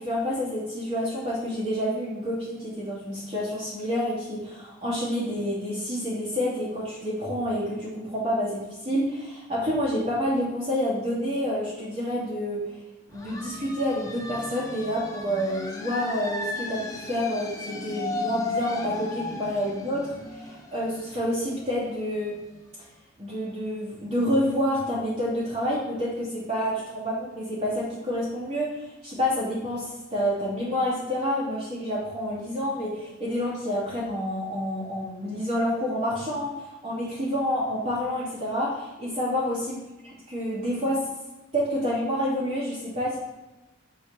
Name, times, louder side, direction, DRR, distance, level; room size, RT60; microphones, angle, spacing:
voice 1, 0.0-12.6 13.1-20.0 20.3-22.4 23.2-36.5 36.8-39.8 40.3-41.1 41.5-43.2, equal, 35° right, -11 dB, 2.9 m, -28 dB
sound 1, 13.1-22.6, left 2 dB, 15° left, 1.0 m, -35 dB
6.8 x 5.1 x 5.5 m, 1.0 s
head